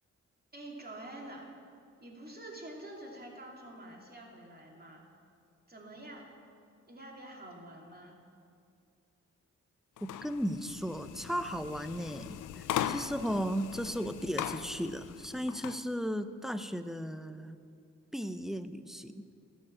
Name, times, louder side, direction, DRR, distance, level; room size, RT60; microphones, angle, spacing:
voice 1, 0.5-1.5 2.0-5.1 5.7-6.3 6.9-8.2, right 1 dB, 30° right, -1 dB, 2.6 m, -47 dB
sound 1, 10.0-15.8, left 11 dB, 80° left, 0.5 m, -39 dB
voice 2, 10.0-17.6 18.1-19.1, equal, ahead, 10 dB, 0.6 m, -35 dB
12.5 x 5.6 x 8.6 m, 2.4 s
cardioid pair, 50°, 30 cm